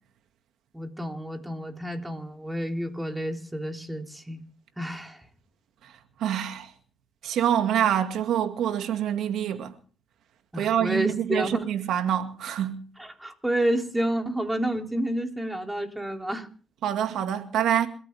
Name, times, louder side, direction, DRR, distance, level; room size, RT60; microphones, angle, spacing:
voice 1, 0.7-4.4 4.8-5.3 10.5-11.7 13.0-16.5, right 1 dB, 10° right, 3.4 m, -30 dB
voice 2, 6.2-6.7 7.2-9.7 10.6-12.8 16.8-17.9, right 10 dB, 80° right, 2.2 m, -26 dB
27.5 x 14.0 x 3.6 m
cardioid pair, 90°, 0 cm